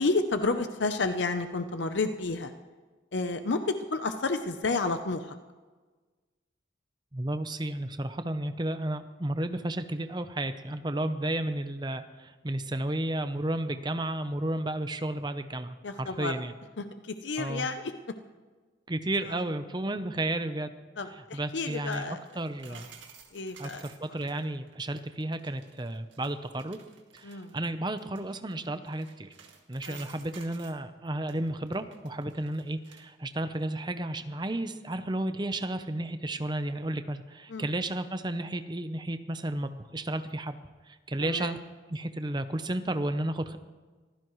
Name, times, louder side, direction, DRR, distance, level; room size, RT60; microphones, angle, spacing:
voice 1, 0.0-2.5 3.1-5.4 15.8-16.3 16.8-17.9 19.2-19.4 21.0-22.2 22.7-22.9 23.3-23.9 27.2-27.6 29.9-30.1 37.5-37.7 41.2-41.6, left 3 dB, 70° left, 8 dB, 0.7 m, -31 dB
voice 2, 7.1-16.5 17.4-17.7 18.9-20.7 21.3-22.9 23.6-26.8 27.1-29.3 29.7-40.6 41.1-41.6 41.9-43.6, right 1 dB, 25° right, 9 dB, 0.7 m, -32 dB
sound 1, 21.6-30.8 31.3-33.1 33.4-33.5, right 7 dB, 85° right, 1.8 m, -54 dB
24.0 x 15.5 x 3.2 m, 1.4 s
head